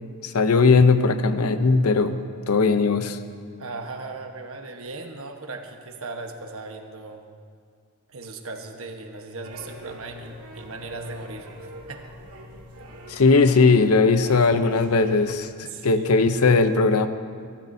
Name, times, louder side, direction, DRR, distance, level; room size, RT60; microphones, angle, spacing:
voice 1, 0.2-3.2 13.1-17.1, left 4 dB, 80° left, 10 dB, 0.7 m, -19 dB
voice 2, 3.6-7.2 8.1-12.1 12.7-12.8 15.6-16.1, right 3 dB, 65° right, 4 dB, 1.2 m, -38 dB
sound 1, 9.4-15.3, equal, 80° right, 1.7 m, -43 dB
24.5 x 13.5 x 2.7 m, 2.1 s
head